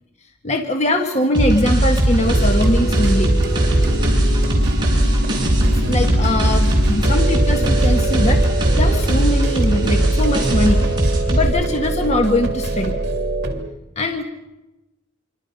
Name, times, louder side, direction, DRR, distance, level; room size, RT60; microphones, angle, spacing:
voice 1, 0.4-3.3 5.9-8.4 8.7-10.8 11.3-13.0 14.0-14.2, left 1 dB, 35° left, 4 dB, 1.8 m, -21 dB
sound 1, 1.3-11.4, right 1 dB, 25° right, 6.6 m, -18 dB
sound 2, 2.2-13.6, right 2 dB, 55° right, 2.9 m, -25 dB
27.0 x 24.5 x 5.6 m, 0.98 s
head